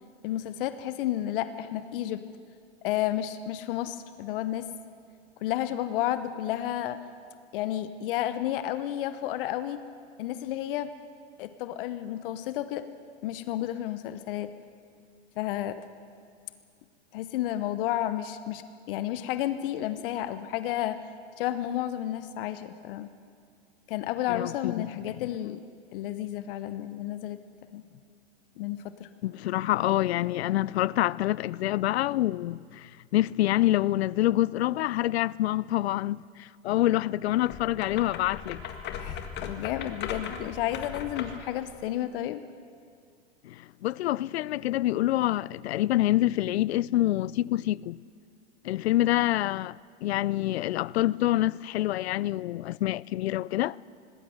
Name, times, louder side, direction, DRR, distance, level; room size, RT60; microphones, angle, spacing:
voice 1, 0.2-2.2 2.8-4.7 5.4-7.0 7.5-9.8 10.2-10.9 11.4-12.8 13.2-14.5 15.4-15.8 17.1-18.6 18.9-21.0 21.4-23.1 23.9-25.6 25.9-27.4 27.7-27.8 28.6-29.1 39.0-42.4, left 12 dB, 55° left, 1.0 m, -31 dB
voice 2, 24.3-24.9 29.2-38.6 43.4-48.0 48.6-53.8, left 15 dB, 70° left, 0.5 m, -26 dB
sound 1, 37.4-41.5, left 7 dB, 30° left, 1.9 m, -38 dB
19.0 x 17.0 x 7.8 m
hypercardioid pair, 120°, 33 cm